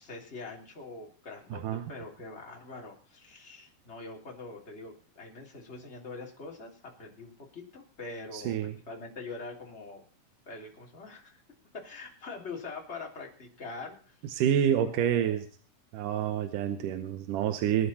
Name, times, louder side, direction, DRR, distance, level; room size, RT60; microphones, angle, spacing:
voice 1, 0.0-10.0 10.4-11.4 11.7-14.2 14.6-15.4, left 3 dB, 20° left, -1 dB, 3.1 m, -44 dB
voice 2, 8.3-8.7 14.3-15.5 15.9-17.9, right 9 dB, 75° right, 8 dB, 2.4 m, -28 dB
21.5 x 10.0 x 4.3 m, 0.39 s
omnidirectional pair, 4.0 m